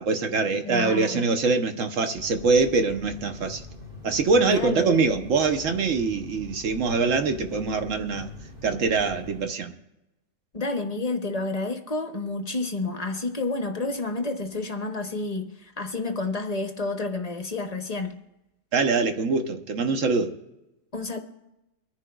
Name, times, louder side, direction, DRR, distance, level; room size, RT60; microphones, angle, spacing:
voice 1, 0.0-3.6 4.0-8.3 8.6-9.7 18.7-20.3, right 4 dB, 65° right, 1.2 m, -24 dB
voice 2, 0.6-1.3 4.4-5.2 10.5-18.1 20.9-21.2, left 3 dB, 35° left, 0.7 m, -30 dB
sound 1, 2.2-9.5, left 2 dB, 40° right, 1.7 m, -43 dB
24.5 x 10.0 x 2.3 m
omnidirectional pair, 1.5 m